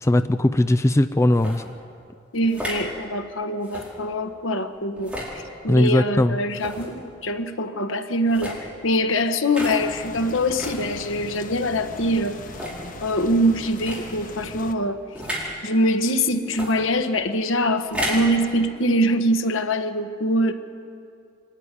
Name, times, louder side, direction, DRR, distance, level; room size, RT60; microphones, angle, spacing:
voice 1, 0.0-1.6 5.7-6.4, left 1 dB, 15° left, 10 dB, 0.4 m, -19 dB
sound 1, 1.3-1.6 2.4-2.8 3.6-3.9 5.0-5.3 6.5-6.9 8.2-8.6 9.5-9.8 10.6-10.8 11.5-11.6 12.4-12.8 13.8-14.0 15.2-15.5 16.5-16.7 17.8-18.3, equal, 5° right, 4.8 m, -31 dB
voice 2, 2.3-12.4 13.0-15.0 15.6-20.5, equal, 80° left, 6 dB, 1.4 m, -23 dB
sound 2, 9.8-14.7, left 2 dB, 45° left, 1.1 m, -39 dB
24.0 x 13.5 x 9.8 m, 2.4 s
head